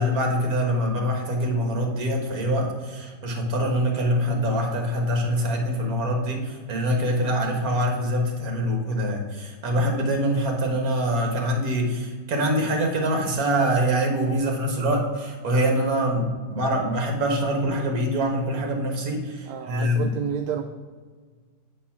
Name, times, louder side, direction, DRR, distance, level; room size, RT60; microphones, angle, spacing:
voice 1, 0.0-20.1, equal, 55° right, 1 dB, 1.8 m, -24 dB
voice 2, 19.5-20.6, right 9 dB, 75° right, 5 dB, 1.1 m, -30 dB
8.7 x 4.1 x 5.8 m, 1.5 s
omnidirectional pair, 2.0 m